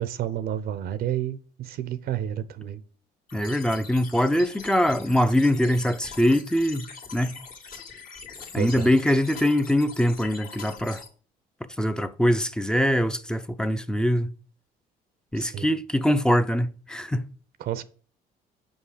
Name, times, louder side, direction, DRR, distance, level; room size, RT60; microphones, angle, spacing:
voice 1, 0.0-2.8 8.6-8.9 15.4-15.7 17.6-17.8, right 11 dB, 65° right, 0.6 m, -30 dB
sound 1, 3.3-11.1, left 5 dB, 55° left, 1.7 m, -43 dB
voice 2, 3.3-6.9 7.1-7.4 8.5-11.0 11.8-14.3 15.3-17.2, equal, 5° left, 0.5 m, -23 dB
5.4 x 5.4 x 4.9 m
cardioid pair, 110°, 17 cm